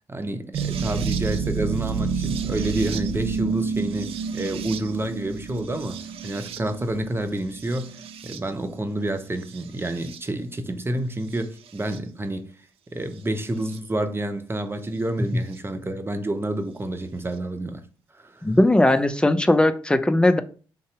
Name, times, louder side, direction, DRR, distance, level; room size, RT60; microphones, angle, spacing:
voice 1, 0.1-8.0 8.2-12.5 12.9-17.8 18.2-18.5, right 1 dB, 20° right, 0.9 m, -29 dB
sound 1, 0.5-8.7 9.4-10.2 11.3-12.0 13.7-13.8 15.5-15.6, right 6 dB, 60° right, 0.5 m, -30 dB
voice 2, 18.4-20.4, left 1 dB, 10° left, 0.6 m, -18 dB
3.7 x 2.7 x 4.7 m
hypercardioid pair, 45°, 11 cm